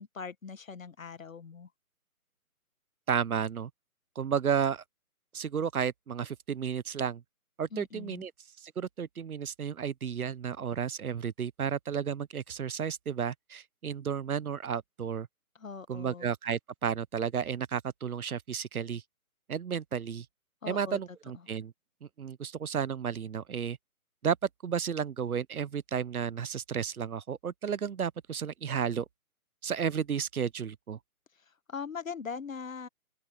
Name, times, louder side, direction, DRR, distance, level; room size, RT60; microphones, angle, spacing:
voice 1, 0.0-1.7 7.7-8.3 15.6-16.3 20.6-21.0 31.7-32.9, left 5 dB, 60° left, 1.6 m, -41 dB
voice 2, 3.1-3.7 4.2-4.8 5.3-7.2 7.6-8.3 8.6-15.3 15.9-19.0 19.5-20.3 20.7-21.7 22.0-23.8 24.2-24.4 24.6-29.1 29.6-31.0, right 7 dB, 70° right, 0.9 m, -32 dB
open air
hypercardioid pair, 175°, 44 cm